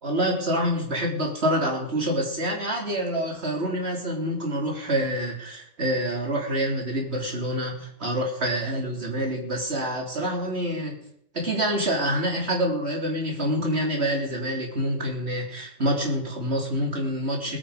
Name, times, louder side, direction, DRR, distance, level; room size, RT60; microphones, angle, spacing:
voice 1, 0.0-10.9 11.3-17.6, equal, 30° right, 0 dB, 3.4 m, -27 dB
20.0 x 9.6 x 5.1 m, 0.70 s
omnidirectional pair, 2.3 m